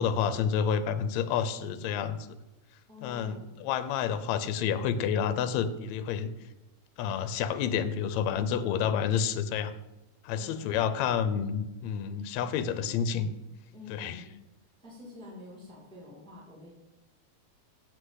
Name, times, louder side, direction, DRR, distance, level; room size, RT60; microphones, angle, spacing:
voice 1, 0.0-2.2 3.0-6.3 7.0-9.7 10.2-13.3 13.9-14.2, left 7 dB, 80° left, 12 dB, 1.9 m, -29 dB
voice 2, 2.9-3.5 10.3-10.7 13.7-14.4 14.8-16.7, left 3 dB, ahead, -4 dB, 1.8 m, -47 dB
8.1 x 7.9 x 4.0 m, 0.96 s
omnidirectional pair, 3.3 m